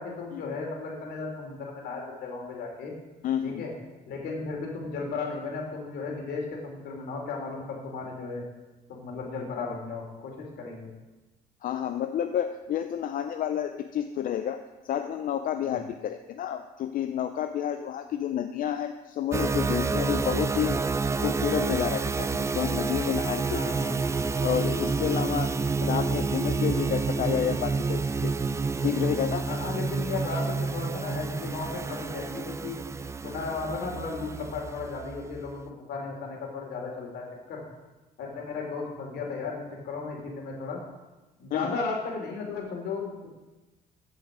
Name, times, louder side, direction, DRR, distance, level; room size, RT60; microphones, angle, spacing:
voice 1, 0.0-2.9 3.4-3.7 4.1-8.4 8.9-10.9 15.6-15.8 23.5-24.3 24.7-25.1 29.5-32.8 33.2-37.2 37.5-37.6 38.2-40.8 41.4-43.3, left 4 dB, 75° left, 0 dB, 3.0 m, -35 dB
voice 2, 3.2-3.6 11.6-20.8 21.2-23.6 24.4-25.5 25.8-28.3 28.8-29.5 41.5-41.8, left 9 dB, 55° left, 7 dB, 0.6 m, -30 dB
sound 1, 19.3-35.6, right 4 dB, 15° right, 0.4 m, -29 dB
14.5 x 5.6 x 5.0 m, 1.1 s
cardioid pair, 110°, 17 cm